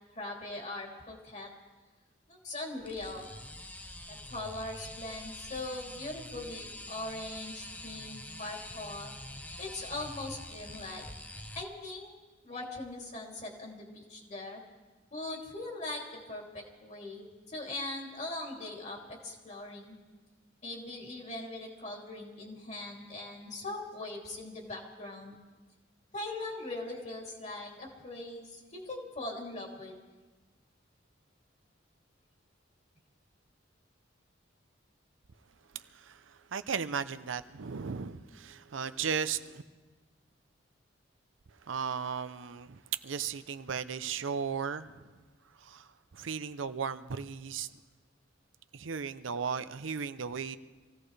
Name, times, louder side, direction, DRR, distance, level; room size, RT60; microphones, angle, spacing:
voice 1, 0.1-1.5 2.3-3.2 4.1-9.1 9.6-11.0 11.5-12.1 12.4-14.6 15.1-16.0 16.3-20.0 20.6-25.4 26.1-29.9, left 2 dB, 40° left, -1 dB, 2.9 m, -41 dB
sound 1, 2.8-11.6, left 1 dB, 10° left, 0.7 m, -45 dB
voice 2, 35.7-39.6 41.6-45.0 45.6-47.7 48.7-50.6, right 6 dB, 90° right, 12 dB, 0.6 m, -36 dB
26.0 x 16.5 x 3.3 m, 1.3 s
head